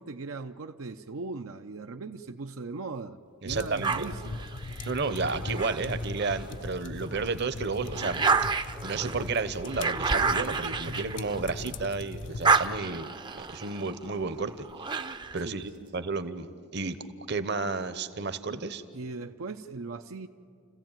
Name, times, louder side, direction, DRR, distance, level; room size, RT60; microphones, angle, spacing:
voice 1, 0.0-3.2 3.4-4.5 12.8-13.1 15.4-15.6 18.9-20.3, right 3 dB, 80° right, 6 dB, 0.6 m, -39 dB
voice 2, 3.4-4.1 4.9-8.3 8.8-13.1 13.4-14.7 15.3-16.5 16.7-17.0 17.3-18.8, right 4 dB, 55° right, 12 dB, 0.9 m, -32 dB
sound 1, 3.5-12.8, left 3 dB, 60° left, 0.5 m, -40 dB
sound 2, 3.8-6.5 7.0-11.8 12.1-15.4, right 4 dB, 20° right, 0.5 m, -30 dB
29.0 x 15.0 x 9.0 m, 2.6 s
head